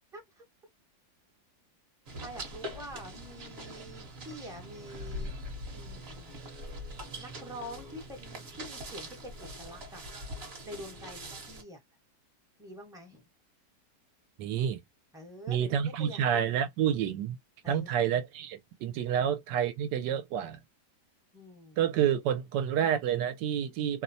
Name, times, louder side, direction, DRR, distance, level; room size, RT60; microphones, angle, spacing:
voice 1, 0.1-0.4 2.2-5.3 5.7-6.4 7.1-10.0 10.6-11.8 12.6-13.2 15.1-16.2 17.6-17.9 19.0-19.2 21.3-21.8, equal, 5° right, 0.5 m, -46 dB
sound 1, 2.1-11.6, equal, 45° right, 1.0 m, -42 dB
voice 2, 14.4-14.8 15.5-17.4 17.7-20.6 21.8-24.0, right 9 dB, 75° right, 1.2 m, -29 dB
3.0 x 2.1 x 2.5 m
omnidirectional pair, 1.9 m